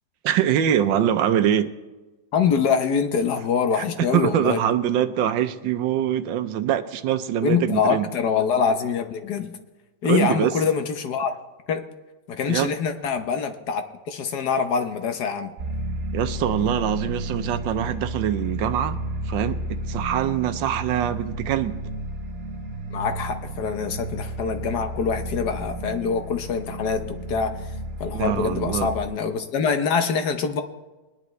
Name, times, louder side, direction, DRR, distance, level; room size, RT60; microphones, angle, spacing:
voice 1, 0.2-1.7 3.7-8.1 10.0-10.5 12.5-12.7 16.1-19.0 19.3-21.8 28.1-28.9, right 10 dB, 85° right, 11 dB, 1.4 m, -23 dB
voice 2, 2.3-4.6 7.4-9.5 10.0-11.3 11.7-11.8 12.3-15.5 22.9-27.6 28.0-30.6, left 6 dB, 65° left, 7 dB, 1.4 m, -24 dB
sound 1, 15.6-29.0, right 1 dB, 45° right, 1.0 m, -32 dB
22.5 x 10.5 x 3.2 m, 1.2 s
omnidirectional pair, 2.0 m